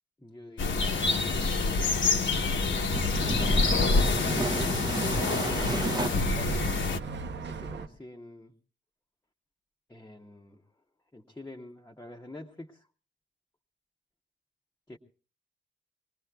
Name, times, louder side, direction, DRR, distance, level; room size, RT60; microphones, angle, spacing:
voice 1, 0.2-2.4 3.5-6.8 7.4-8.5 9.9-10.6 11.1-12.8 14.9-15.0, left 1 dB, 15° left, -1 dB, 0.9 m, -47 dB
sound 1, 0.6-7.0, left 4 dB, 70° left, 1.1 m, -27 dB
sound 2, 0.8-6.1, right 3 dB, 20° right, 0.7 m, -34 dB
Bus, 2.3-7.9, right 3 dB, 65° right, 0.8 m, -38 dB
25.0 x 19.5 x 2.3 m, 0.36 s
wide cardioid pair, 140°, 20 cm